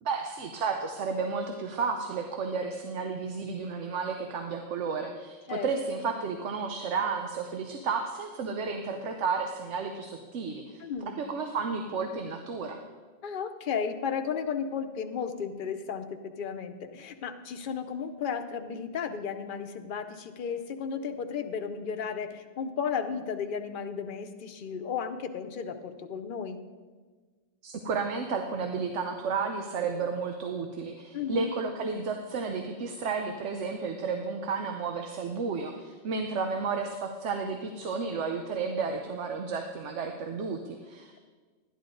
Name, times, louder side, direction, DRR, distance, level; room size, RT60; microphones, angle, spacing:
voice 1, 0.0-10.8 11.2-12.8 27.6-41.2, right 5 dB, 90° right, 5 dB, 1.1 m, -32 dB
voice 2, 10.8-11.2 13.2-26.6 31.1-31.5, left 6 dB, 50° left, 6 dB, 0.8 m, -34 dB
12.0 x 10.5 x 3.8 m, 1.4 s
omnidirectional pair, 1.2 m